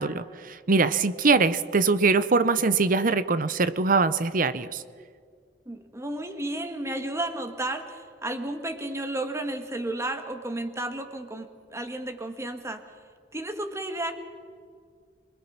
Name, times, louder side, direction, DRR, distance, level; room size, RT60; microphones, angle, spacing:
voice 1, 0.0-4.8, right 4 dB, 50° right, 14 dB, 0.8 m, -23 dB
voice 2, 5.7-12.8 13.3-14.2, right 1 dB, 15° right, 6 dB, 1.8 m, -32 dB
26.5 x 21.0 x 5.9 m, 2.1 s
head